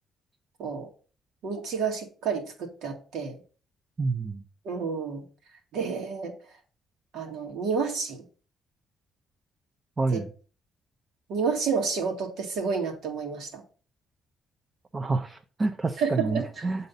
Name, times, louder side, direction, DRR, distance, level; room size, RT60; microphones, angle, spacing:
voice 1, 1.4-3.4 4.6-5.2 5.7-6.4 7.1-8.2 10.1-10.2 11.3-13.6 16.0-16.4, right 5 dB, 80° right, 2.1 m, -30 dB
voice 2, 4.0-4.4 10.0-10.3 14.9-16.9, right 3 dB, 30° right, 0.7 m, -28 dB
7.9 x 4.1 x 5.6 m
cardioid pair, 90°, 0 cm